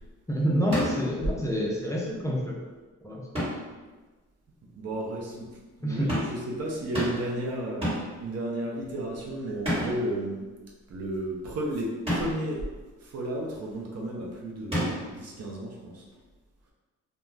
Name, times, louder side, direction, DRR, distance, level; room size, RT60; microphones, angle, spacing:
voice 1, 0.3-2.6 3.0-3.2 5.8-6.1, equal, 10° left, -4 dB, 0.5 m, -27 dB
sound 1, 0.7-1.2 3.3-3.8 6.1-6.5 6.9-7.4 7.8-8.2 9.6-10.1 12.1-12.5 14.7-15.2, equal, 20° right, 1.3 m, -30 dB
voice 2, 4.8-5.5 5.8-10.4 10.9-12.6 13.1-16.0, right 1 dB, 55° right, -2 dB, 0.7 m, -33 dB
2.4 x 2.2 x 3.2 m, 1.2 s
cardioid pair, 90°, 30 cm